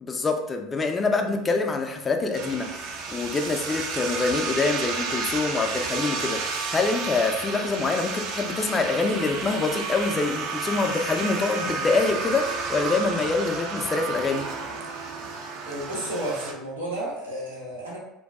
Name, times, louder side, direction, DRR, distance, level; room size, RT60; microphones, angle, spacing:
voice 1, 0.0-14.5, left 3 dB, 25° left, 4 dB, 0.4 m, -25 dB
sound 1, 2.3-16.5, right 4 dB, 60° right, 0.4 m, -31 dB
voice 2, 15.6-18.0, right 1 dB, 90° right, -6 dB, 0.8 m, -32 dB
2.6 x 2.2 x 2.3 m, 0.89 s
hypercardioid pair, 75°, 0 cm